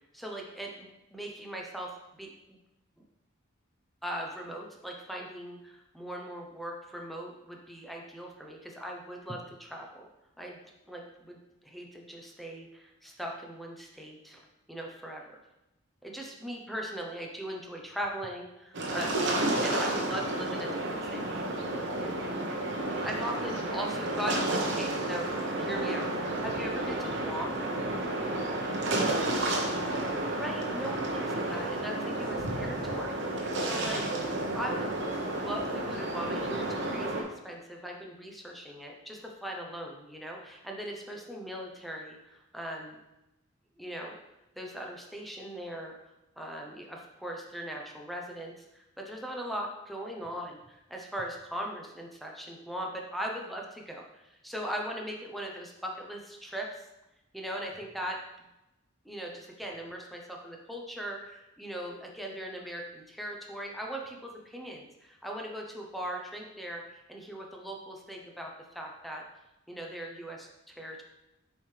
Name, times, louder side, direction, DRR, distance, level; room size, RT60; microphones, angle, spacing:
voice 1, 0.1-1.9 2.2-2.3 4.0-10.1 10.4-10.6 10.8-14.4 14.7-15.4 16.0-19.2 19.6-21.3 23.0-27.6 30.4-34.0 34.5-34.9 35.3-43.0 43.8-44.1 44.6-45.9 46.4-56.7 57.3-58.2 59.0-69.2 69.7-71.0, equal, ahead, 0 dB, 0.7 m, -39 dB
sound 1, 18.7-37.2, right 1 dB, 60° right, 1.0 m, -31 dB
6.9 x 4.6 x 3.2 m, 0.93 s
head